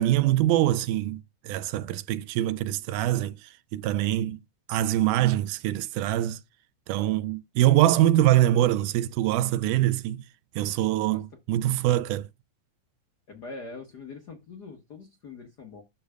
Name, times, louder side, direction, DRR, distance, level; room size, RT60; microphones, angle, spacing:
voice 1, 0.0-4.4 4.7-6.4 6.9-10.2 10.6-12.3, right 13 dB, 90° right, 2.1 m, -24 dB
voice 2, 13.3-15.8, left 3 dB, 50° left, 1.3 m, -43 dB
11.5 x 5.7 x 2.3 m
omnidirectional pair, 3.6 m